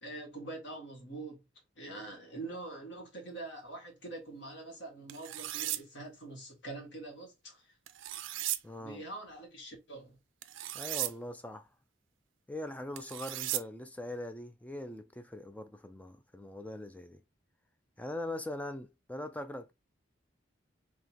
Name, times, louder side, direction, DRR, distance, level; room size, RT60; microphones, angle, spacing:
voice 1, 0.0-1.4 1.8-7.6 8.8-10.2, right 2 dB, 70° left, 1.9 m, -44 dB
sound 1, 5.1-5.8 7.9-8.6 10.4-11.1 13.0-13.6, right 14 dB, 80° right, 0.4 m, -36 dB
voice 2, 8.6-9.0 10.7-11.7 12.5-17.2 18.0-19.7, left 1 dB, 10° left, 0.4 m, -41 dB
3.7 x 2.8 x 4.6 m
head